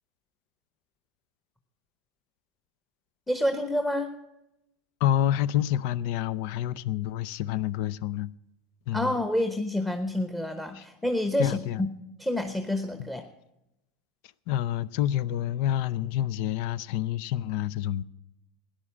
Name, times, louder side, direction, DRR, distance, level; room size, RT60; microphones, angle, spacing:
voice 1, 3.3-4.1 8.9-11.9 12.2-13.2, left 1 dB, 5° left, 1.0 m, -28 dB
voice 2, 5.0-8.3 8.9-9.2 10.7-10.8 11.4-11.9 13.0-13.1 14.5-18.0, left 11 dB, 65° left, 0.5 m, -28 dB
13.5 x 10.0 x 7.2 m
hypercardioid pair, 100°, 0 cm